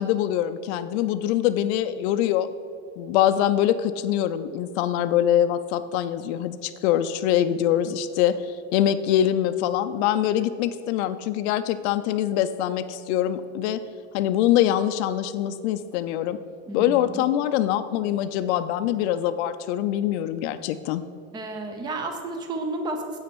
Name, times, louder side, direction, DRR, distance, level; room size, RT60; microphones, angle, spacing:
voice 1, 0.0-2.5 3.0-13.8 14.1-16.4 16.7-21.0, left 11 dB, 60° left, 9 dB, 0.5 m, -24 dB
voice 2, 16.7-17.2 21.3-23.2, right 2 dB, 10° right, 4 dB, 0.6 m, -32 dB
8.1 x 6.3 x 6.0 m, 2.5 s
supercardioid pair, 165°, 37 cm